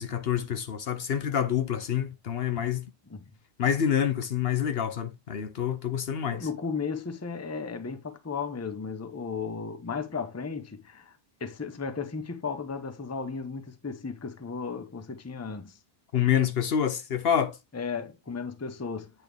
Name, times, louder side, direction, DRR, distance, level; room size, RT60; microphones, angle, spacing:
voice 1, 0.0-2.8 3.6-6.5 16.1-17.6, left 9 dB, 65° left, 0.9 m, -27 dB
voice 2, 6.3-15.8 17.7-19.1, left 5 dB, 15° left, 0.6 m, -35 dB
8.8 x 4.1 x 3.3 m
omnidirectional pair, 1.1 m